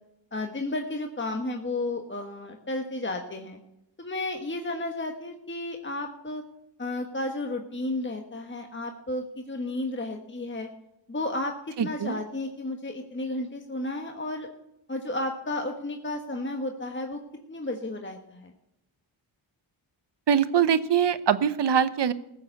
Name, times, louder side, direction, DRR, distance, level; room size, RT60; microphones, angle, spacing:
voice 1, 0.3-3.6 4.0-6.4 6.8-10.7 11.1-14.5 14.9-17.2 17.5-18.5, left 2 dB, 25° left, 3 dB, 1.4 m, -32 dB
voice 2, 11.8-12.2 20.3-22.1, right 8 dB, 60° right, 13 dB, 1.0 m, -23 dB
15.0 x 7.4 x 6.6 m, 0.87 s
cardioid pair, 65°, 49 cm